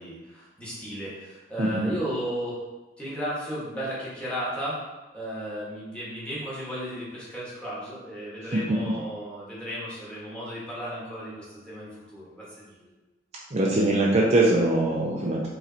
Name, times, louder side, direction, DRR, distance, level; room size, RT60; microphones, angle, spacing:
voice 1, 0.0-2.6 3.0-4.8 5.1-12.9, equal, 5° left, -8 dB, 1.4 m, -34 dB
voice 2, 1.6-1.9 13.5-15.5, right 2 dB, 35° right, -3 dB, 0.5 m, -22 dB
4.9 x 3.2 x 2.8 m, 1.1 s
head